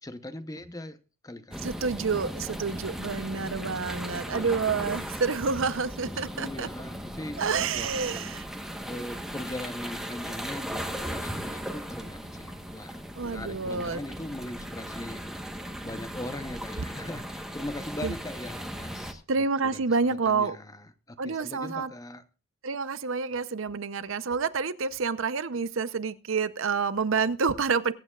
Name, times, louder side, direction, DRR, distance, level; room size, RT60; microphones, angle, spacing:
voice 1, 0.0-1.6 2.6-2.8 4.3-4.7 6.1-8.0 8.8-15.2 15.8-22.2, left 1 dB, 15° left, 0.8 m, -40 dB
sound 1, 1.5-19.1, equal, ahead, 1.1 m, -37 dB
voice 2, 1.6-6.7 7.4-8.5 13.2-14.0 18.0-18.1 19.3-20.6 21.2-21.9 22.6-27.9, right 5 dB, 65° right, 0.7 m, -28 dB
22.0 x 8.8 x 2.4 m
head